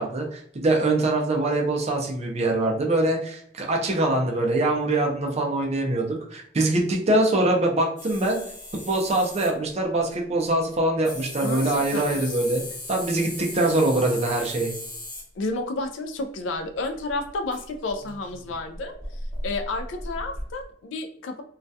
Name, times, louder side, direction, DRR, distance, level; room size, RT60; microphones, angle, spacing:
voice 1, 0.0-8.4 8.9-12.6 12.9-14.7, right 2 dB, 35° right, 1 dB, 0.5 m, -23 dB
sound 1, 8.0-9.5 11.0-15.2 16.6-16.7 16.8-20.6, left 1 dB, 40° left, 1.1 m, -37 dB
voice 2, 11.4-12.4 15.4-18.9 19.4-21.4, left 2 dB, 65° left, 5 dB, 0.3 m, -31 dB
2.3 x 2.1 x 2.6 m, 0.64 s
head